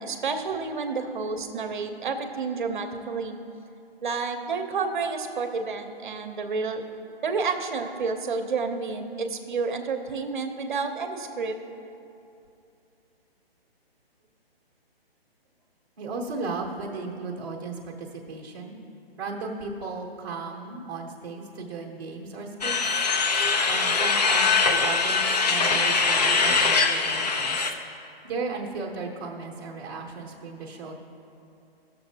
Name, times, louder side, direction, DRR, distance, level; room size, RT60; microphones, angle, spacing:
voice 1, 0.0-3.4 4.0-6.8 7.2-11.6, right 4 dB, 50° right, 6 dB, 0.8 m, -30 dB
voice 2, 16.0-18.8 19.2-23.0 23.7-27.7 28.2-30.9, right 4 dB, 20° right, -3 dB, 0.9 m, -35 dB
sound 1, 22.6-27.7, left 4 dB, 40° left, 0.5 m, -22 dB
15.0 x 6.8 x 2.7 m, 2.7 s
hypercardioid pair, 165°, 31 cm